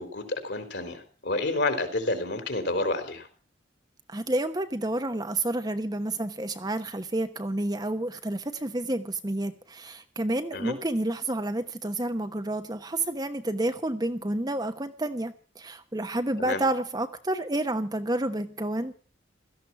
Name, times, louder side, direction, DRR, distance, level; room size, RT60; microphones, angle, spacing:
voice 1, 0.0-3.3 10.5-10.7 16.4-16.6, left 2 dB, 60° left, 8 dB, 3.9 m, -29 dB
voice 2, 4.1-18.9, right 1 dB, 20° right, 8 dB, 1.0 m, -30 dB
17.0 x 14.0 x 5.9 m, 0.38 s
head